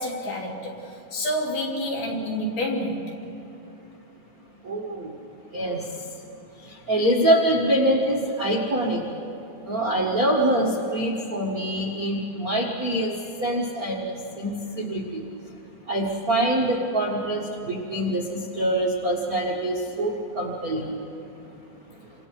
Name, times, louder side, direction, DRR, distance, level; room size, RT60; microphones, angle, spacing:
voice 1, 0.0-3.1, left 1 dB, 90° left, -2 dB, 5.0 m, -28 dB
voice 2, 4.6-5.1 5.5-5.8 6.9-9.0 9.7-13.1 13.4-15.2 15.9-20.9, right 1 dB, 85° right, -2 dB, 0.7 m, -24 dB
29.0 x 25.5 x 4.6 m, 2.8 s
omnidirectional pair, 4.3 m